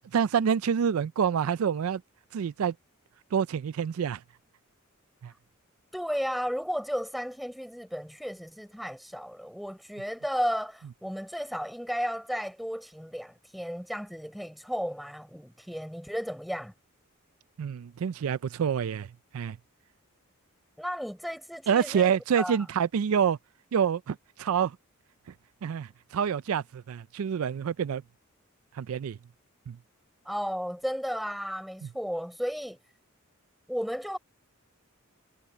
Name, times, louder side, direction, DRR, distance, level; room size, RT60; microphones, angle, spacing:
voice 1, 0.1-2.0 2.3-2.7 3.3-4.2 5.2-5.3 17.6-19.6 21.7-23.4 23.7-24.8 25.6-28.0 28.7-29.2 29.7-29.8, right 7 dB, 80° right, 0.4 m, -27 dB
voice 2, 5.9-16.7 20.8-22.6 30.2-32.8 33.7-34.2, equal, ahead, 4.3 m, -34 dB
head